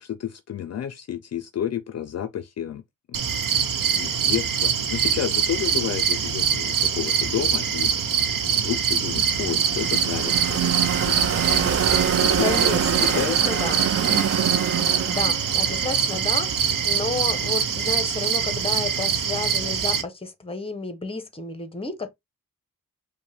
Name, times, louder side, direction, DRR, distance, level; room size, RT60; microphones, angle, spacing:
voice 1, 0.0-2.8 3.1-3.2 4.0-8.0 8.4-11.5 12.2-12.6 13.0-13.4, left 10 dB, 55° left, 0.5 m, -31 dB
sound 1, 3.1-20.0, right 7 dB, 85° right, 0.9 m, -24 dB
sound 2, 8.9-16.9, right 8 dB, 45° right, 0.5 m, -26 dB
voice 2, 12.4-13.8 15.0-22.1, left 3 dB, 15° left, 0.9 m, -31 dB
5.1 x 2.2 x 3.4 m
wide cardioid pair, 115°, 32 cm